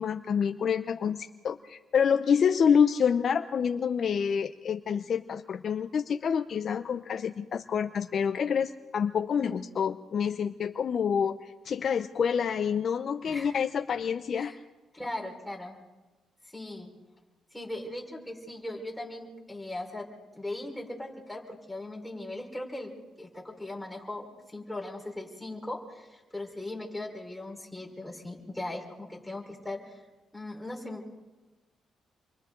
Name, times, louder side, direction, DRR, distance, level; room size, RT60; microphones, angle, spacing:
voice 1, 0.0-14.5, left 7 dB, 55° left, 7 dB, 0.7 m, -27 dB
voice 2, 14.9-15.8 16.5-16.9 17.5-20.1 20.3-30.0 30.3-31.2, left 1 dB, 5° left, -1 dB, 4.9 m, -39 dB
28.5 x 23.5 x 3.9 m, 1.1 s
cardioid pair, 85°, 0 cm